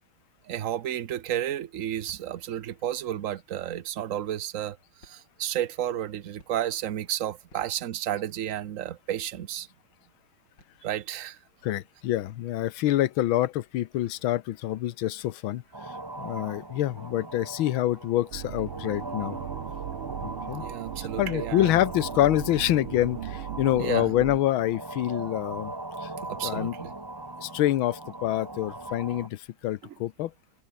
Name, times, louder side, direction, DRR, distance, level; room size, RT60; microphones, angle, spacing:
voice 1, 0.5-4.8 5.0-9.7 10.8-11.4 16.2-16.3 20.6-21.7 23.8-24.1 26.3-26.9, right 11 dB, 60° right, 0.9 m, -32 dB
sound 1, 2.1-2.7 3.7-4.1 5.0-5.6 6.4-7.0 7.5-8.2 10.4-11.0, left 2 dB, 55° left, 8.3 m, -60 dB
voice 2, 11.6-15.6 16.2-19.4 20.2-20.6 21.0-25.7 26.0-26.1 26.4-26.8 27.4-30.3, left 14 dB, 70° left, 1.6 m, -26 dB
sound 2, 15.7-29.3, right 2 dB, 15° right, 1.2 m, -40 dB
sound 3, 18.3-24.4, right 11 dB, 80° right, 1.9 m, -38 dB
omnidirectional pair, 2.4 m